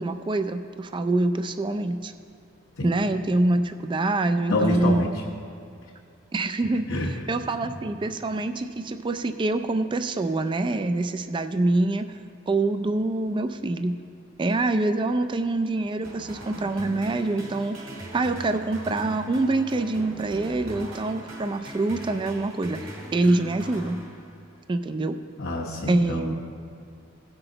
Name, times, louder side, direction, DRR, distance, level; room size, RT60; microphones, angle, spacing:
voice 1, 0.0-2.1 2.8-5.1 6.3-12.0 12.5-14.0 14.4-17.8 18.1-24.0 24.7-25.2 25.9-26.4, right 2 dB, 25° right, 9 dB, 0.3 m, -25 dB
voice 2, 4.5-5.1 6.9-7.1 7.6-7.8 25.4-26.3, left 2 dB, 70° left, -7 dB, 1.2 m, -27 dB
sound 1, 16.0-24.6, right 1 dB, 70° right, 2.3 m, -40 dB
17.0 x 5.9 x 3.9 m, 2.4 s
head